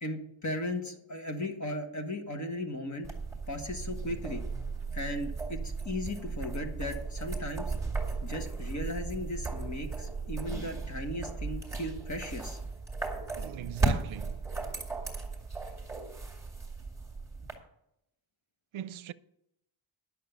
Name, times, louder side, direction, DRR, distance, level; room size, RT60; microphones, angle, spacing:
voice 1, 0.0-3.1 3.5-4.4 4.9-7.7 8.2-12.6, left 1 dB, 35° left, 1.5 m, -36 dB
sound 1, 3.0-17.5, right 4 dB, 5° right, 2.3 m, -36 dB
voice 2, 13.4-14.4 18.7-19.1, right 12 dB, 75° right, 0.6 m, -40 dB
11.0 x 6.7 x 6.9 m
wide cardioid pair, 165°, 48 cm